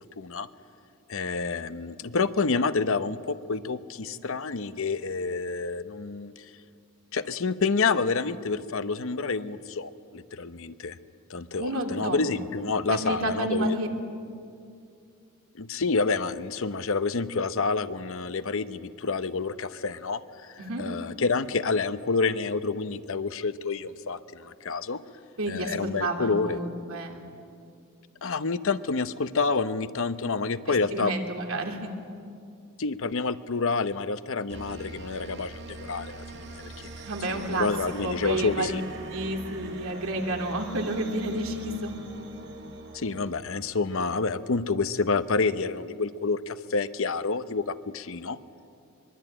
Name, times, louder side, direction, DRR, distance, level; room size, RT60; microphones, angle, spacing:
voice 1, 0.2-0.5 1.1-6.3 7.1-11.0 11.3-13.8 15.6-25.0 25.5-26.6 28.2-31.1 32.8-36.7 37.3-38.8 42.9-48.4, left 4 dB, 70° left, 12 dB, 0.8 m, -28 dB
voice 2, 11.6-12.2 12.9-13.9 20.6-20.8 25.4-27.2 30.7-31.9 37.0-37.7 38.0-38.7 39.1-41.9, right 1 dB, 70° right, 2 dB, 2.9 m, -30 dB
sound 1, 34.5-43.9, right 2 dB, 55° right, 2.2 m, -42 dB
23.5 x 22.5 x 8.9 m, 2.5 s
head